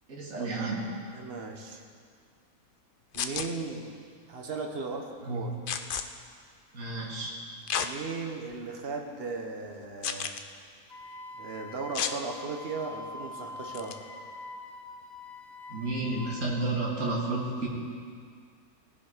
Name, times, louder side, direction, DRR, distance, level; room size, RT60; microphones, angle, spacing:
voice 1, 0.1-0.8 5.3-5.4 6.7-7.3 15.7-17.7, right 2 dB, 65° right, -4 dB, 2.4 m, -31 dB
voice 2, 1.1-1.8 3.1-3.9 4.3-5.6 7.8-10.3 11.4-14.0, right 4 dB, 45° right, 2 dB, 1.3 m, -37 dB
sound 1, 3.1-3.5 5.7-6.0 7.7-7.9 8.5-8.6 10.0-10.4 11.9-12.2 13.7-13.9, left 7 dB, 70° left, 0.5 m, -31 dB
Wind instrument woodwind instrument, 10.9-16.5, left 2 dB, 40° left, 0.8 m, -44 dB
18.5 x 7.1 x 5.0 m, 2.1 s
omnidirectional pair, 1.5 m